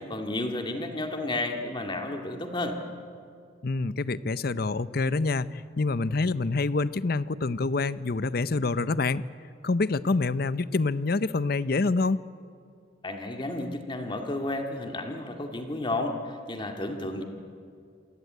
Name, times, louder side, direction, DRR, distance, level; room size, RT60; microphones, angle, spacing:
voice 1, 0.0-2.8 13.0-17.2, left 2 dB, 25° left, 4 dB, 2.1 m, -32 dB
voice 2, 3.6-9.2 9.6-12.2, left 3 dB, 50° left, 16 dB, 0.6 m, -26 dB
27.5 x 16.5 x 9.3 m, 2.3 s
head